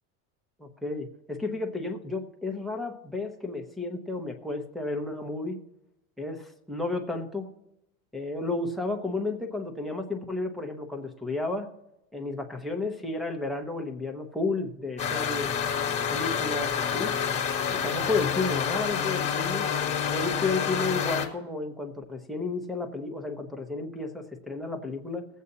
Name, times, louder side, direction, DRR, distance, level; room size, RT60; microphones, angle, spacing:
voice 1, 0.6-5.6 6.2-7.5 8.1-11.7 12.1-15.6 16.0-17.1 17.7-19.7 20.1-25.3, left 3 dB, ahead, 6 dB, 0.9 m, -32 dB
sound 1, 15.0-21.3, left 7 dB, 15° left, 1.6 m, -28 dB
20.5 x 8.2 x 2.8 m, 0.86 s
cardioid pair, 160°, 42 cm